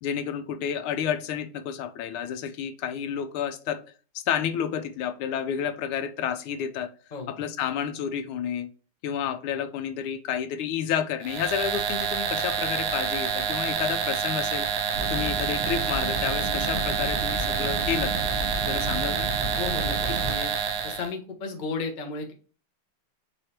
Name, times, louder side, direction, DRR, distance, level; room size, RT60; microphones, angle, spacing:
voice 1, 0.0-3.8 4.1-6.9 7.3-8.7 9.0-14.7 15.1-18.1 18.7-19.3, left 8 dB, 85° left, 1.5 m, -30 dB
sound 1, 11.2-21.1, right 7 dB, 80° right, 1.4 m, -28 dB
sound 2, 14.9-20.3, right 1 dB, 55° right, 1.1 m, -32 dB
voice 2, 19.6-20.5 20.8-22.3, left 4 dB, 65° left, 0.4 m, -34 dB
4.6 x 3.2 x 2.8 m
omnidirectional pair, 2.3 m